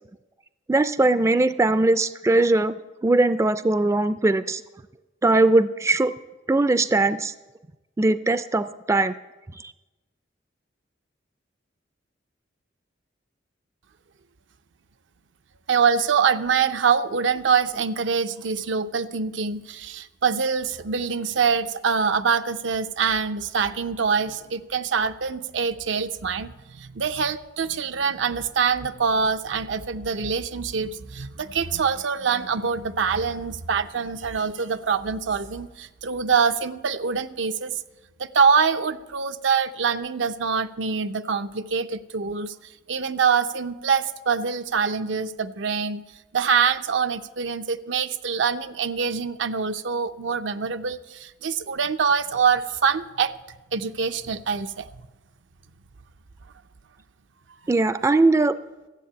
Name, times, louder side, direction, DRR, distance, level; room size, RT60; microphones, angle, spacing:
voice 1, 0.7-2.8 3.0-4.6 5.2-6.1 6.5-7.3 8.0-9.1 57.7-58.5, right 2 dB, 15° right, 14 dB, 0.3 m, -20 dB
voice 2, 15.7-37.7 38.2-42.5 42.9-46.0 46.3-53.3 53.7-54.9, right 6 dB, 80° right, 10 dB, 0.6 m, -24 dB
13.0 x 7.5 x 8.4 m, 1.1 s
head